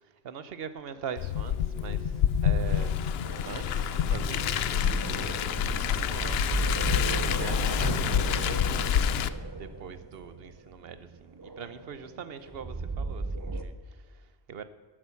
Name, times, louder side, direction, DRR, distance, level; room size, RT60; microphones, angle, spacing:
voice 1, 0.2-3.0 3.5-9.2 9.5-14.6, right 7 dB, 65° right, 13 dB, 1.0 m, -43 dB
Car, 1.2-9.3, left 9 dB, 70° left, 0.8 m, -27 dB
sound 1, 3.2-13.6, right 3 dB, 25° right, 0.6 m, -36 dB
12.5 x 8.7 x 5.8 m, 1.5 s
omnidirectional pair, 1.1 m